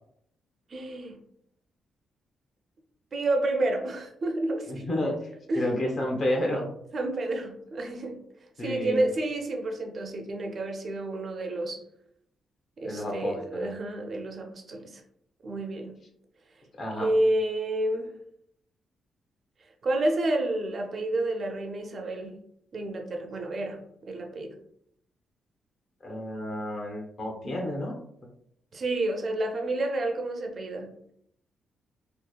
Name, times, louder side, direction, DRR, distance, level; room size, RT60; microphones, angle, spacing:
voice 1, 0.7-1.2 3.1-4.9 5.5-5.7 6.9-8.2 8.6-11.8 12.8-15.0 15.4-16.0 17.0-18.1 19.8-22.4 22.7-24.6 28.7-30.9, right 2 dB, 40° right, 3 dB, 0.4 m, -30 dB
voice 2, 4.7-5.3 5.6-6.7 8.6-9.0 12.8-13.7 16.8-17.1 26.0-27.9, left 1 dB, 40° left, 1 dB, 0.6 m, -30 dB
2.8 x 2.0 x 2.3 m, 0.70 s
cardioid pair, 135°, 0 cm